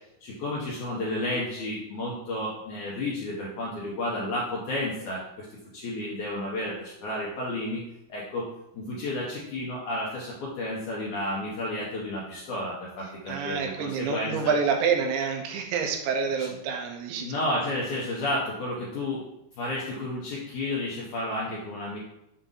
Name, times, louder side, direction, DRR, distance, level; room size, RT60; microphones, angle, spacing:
voice 1, 0.2-5.5 5.7-7.8 8.1-8.5 8.7-14.5 17.2-19.2 19.6-22.0, left 1 dB, 75° left, -5 dB, 1.8 m, -31 dB
voice 2, 13.3-17.4, right 6 dB, 80° right, 3 dB, 2.6 m, -27 dB
7.2 x 2.5 x 5.3 m, 0.85 s
omnidirectional pair, 4.6 m